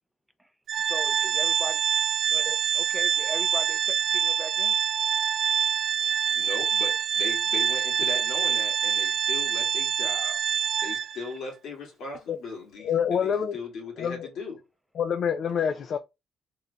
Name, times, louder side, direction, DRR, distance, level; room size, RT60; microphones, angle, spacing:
Organ, 0.7-11.3, right 8 dB, 65° right, 0.3 m, -25 dB
voice 1, 0.9-1.8 2.3-3.8 4.1-4.7, right 1 dB, 5° right, 0.5 m, -38 dB
voice 2, 6.0-10.4 10.8-14.6, left 3 dB, 75° left, 2.1 m, -38 dB
voice 3, 12.8-13.6 14.0-14.3 15.0-16.0, left 7 dB, 60° left, 0.5 m, -26 dB
3.7 x 2.6 x 3.4 m
cardioid pair, 90°, 0 cm